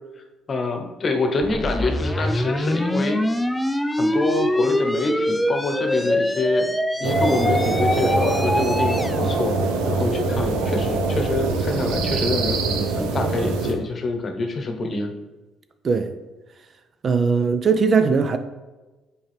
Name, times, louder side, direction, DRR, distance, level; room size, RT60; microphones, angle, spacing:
voice 1, 0.5-3.3 4.0-6.7 7.0-9.5 9.8-15.1, left 3 dB, 45° left, 1.0 m, -26 dB
sound 1, 1.4-9.2, left 1 dB, 10° left, 0.4 m, -24 dB
sound 2, 7.0-13.7, right 3 dB, 85° right, 0.6 m, -23 dB
voice 2, 17.0-18.4, right 5 dB, 45° right, 0.5 m, -19 dB
6.2 x 4.6 x 3.3 m
supercardioid pair, 70°, 0 cm